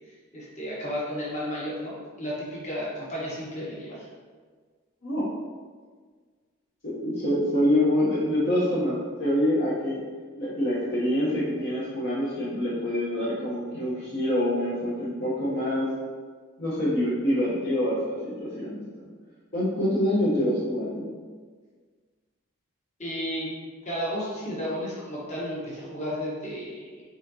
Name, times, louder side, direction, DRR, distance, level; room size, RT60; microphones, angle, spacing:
voice 1, 0.3-4.1 23.0-23.5 23.8-27.0, equal, 35° left, -7 dB, 1.2 m, -33 dB
voice 2, 6.8-10.0 10.4-15.9 16.6-19.1 19.5-21.0, left 1 dB, 50° left, -9 dB, 0.8 m, -26 dB
4.2 x 3.7 x 2.7 m, 1.5 s
head